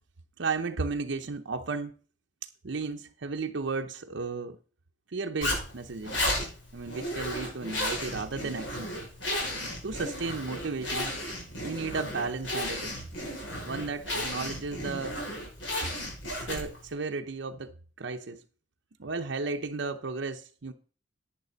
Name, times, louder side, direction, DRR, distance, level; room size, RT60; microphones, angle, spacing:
voice 1, 0.4-1.9 2.4-4.6 5.1-6.2 6.7-8.9 9.8-11.1 11.5-13.0 13.6-15.2 16.4-18.4 19.0-20.7, right 4 dB, 65° right, 0.7 m, -34 dB
Zipper (clothing), 5.4-16.9, left 1 dB, 75° left, 5.9 m, -34 dB
11.0 x 9.1 x 4.0 m
head